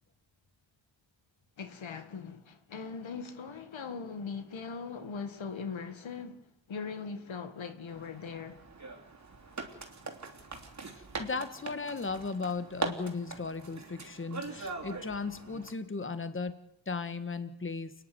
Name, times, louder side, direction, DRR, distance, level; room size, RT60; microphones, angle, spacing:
voice 1, 1.6-8.6, left 5 dB, 85° left, 2.0 m, -40 dB
sound 1, 7.9-15.7, right 3 dB, 35° right, 3.1 m, -41 dB
voice 2, 11.0-16.6 16.9-17.9, left 4 dB, 25° left, 1.5 m, -36 dB
29.0 x 10.5 x 9.5 m
wide cardioid pair, 100°, 45 cm